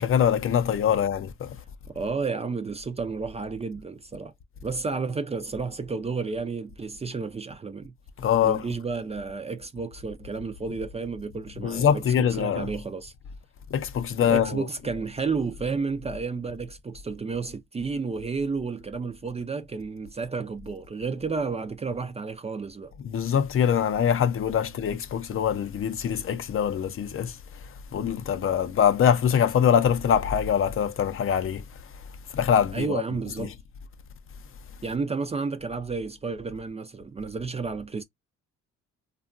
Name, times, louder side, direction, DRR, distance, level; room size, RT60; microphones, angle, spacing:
voice 1, 0.0-1.6 8.2-8.6 11.6-12.7 13.7-14.7 23.0-27.4 27.9-31.6 32.3-33.0 33.4-33.5, left 8 dB, 45° left, 0.5 m, -23 dB
voice 2, 1.9-4.3 4.6-7.9 8.4-13.1 14.2-22.9 32.7-33.6 34.8-38.0, right 4 dB, 20° right, 0.4 m, -31 dB
2.8 x 2.3 x 2.4 m
cardioid pair, 90°, 30 cm